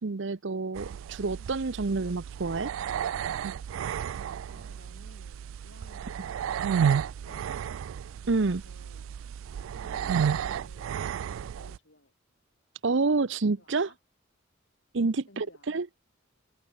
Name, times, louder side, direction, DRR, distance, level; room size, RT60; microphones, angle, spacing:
voice 1, 0.0-2.7 8.3-8.6 12.8-13.9 14.9-15.9, right 3 dB, 65° right, 0.7 m, -28 dB
sound 1, 0.8-11.8, right 8 dB, 85° right, 0.3 m, -32 dB
voice 2, 4.5-7.5 8.2-9.1 9.7-12.1 13.6-14.0 14.9-15.8, left 1 dB, 65° left, 4.7 m, -57 dB
open air
head